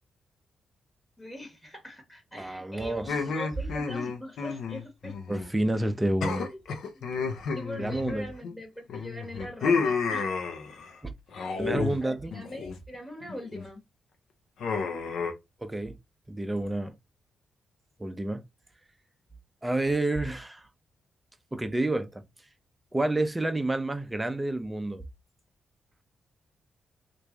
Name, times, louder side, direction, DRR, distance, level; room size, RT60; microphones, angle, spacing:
voice 1, 1.2-5.2 6.4-6.6 6.9-7.2 7.5-10.3 12.0-13.8, left 1 dB, 15° left, 1.2 m, -42 dB
voice 2, 2.3-3.2 5.3-6.5 7.8-8.3 11.0-11.1 11.6-12.3 15.6-15.9 16.3-16.9 18.0-18.4 19.6-20.7 21.5-22.2 22.9-25.0, right 2 dB, 15° right, 0.6 m, -29 dB
sound 1, 3.1-5.5 5.7-5.9 6.2-8.5 8.9-10.9 11.3-12.0 12.3-12.8 13.2-13.6 14.6-15.3, left 5 dB, 80° left, 0.7 m, -31 dB
3.1 x 2.6 x 3.5 m
cardioid pair, 75°, 0 cm